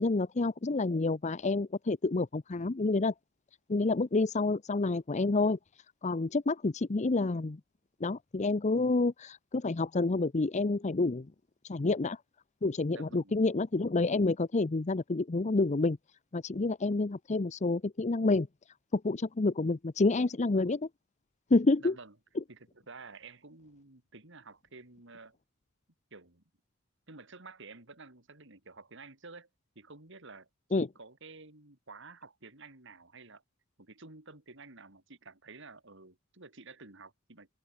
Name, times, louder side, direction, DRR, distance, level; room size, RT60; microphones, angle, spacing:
voice 1, 0.0-3.1 3.7-5.6 6.0-7.6 8.0-11.3 11.7-12.2 12.6-16.0 16.3-18.5 18.9-20.9 21.5-21.9 30.7-30.9, left 3 dB, 35° left, 0.6 m, -28 dB
voice 2, 12.9-13.4 21.8-22.2 22.5-25.4 26.1-26.4 27.1-29.5 29.7-30.5 30.8-33.4 33.8-37.5, right 3 dB, 60° right, 3.4 m, -51 dB
head